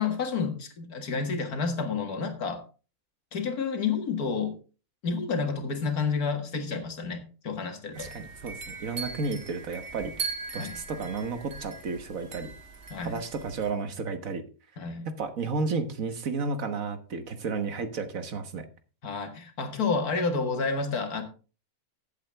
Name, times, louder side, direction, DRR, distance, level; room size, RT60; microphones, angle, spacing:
voice 1, 0.0-2.6 3.3-4.5 5.0-8.1 10.6-10.8 12.9-13.2 14.8-15.1 19.0-21.2, left 5 dB, 80° left, 2.2 m, -30 dB
sound 1, 7.9-13.7, right 4 dB, 40° right, 1.7 m, -40 dB
voice 2, 8.0-10.1 10.5-12.5 13.0-14.4 15.1-18.7, right 4 dB, 65° right, 1.6 m, -32 dB
15.0 x 8.0 x 3.5 m
omnidirectional pair, 1.6 m